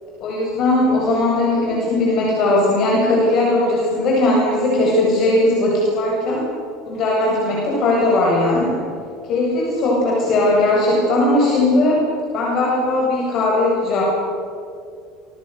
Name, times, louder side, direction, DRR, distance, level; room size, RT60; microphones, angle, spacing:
voice 1, 0.2-6.5 6.8-8.8 9.2-12.0 12.3-14.0, left 2 dB, 35° left, -3 dB, 7.4 m, -18 dB
28.5 x 25.5 x 7.0 m, 2.3 s
cardioid pair, 175°, 0 cm